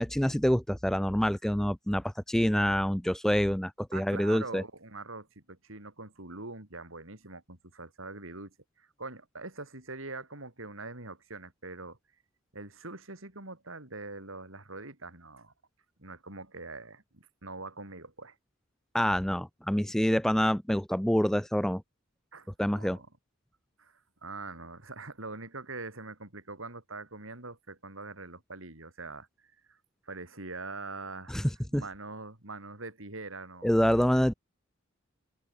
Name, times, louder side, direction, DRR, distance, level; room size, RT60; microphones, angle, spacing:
voice 1, 0.0-4.6 18.9-21.8 22.6-23.0 31.3-31.4 31.7-31.8 33.6-34.3, equal, ahead, 0.3 m, -26 dB
voice 2, 3.9-12.0 12.5-15.5 16.0-18.4 22.3-22.5 22.7-23.1 23.8-29.3 29.7-29.8 30.0-31.4 31.7-33.8, right 3 dB, 70° right, 4.1 m, -43 dB
head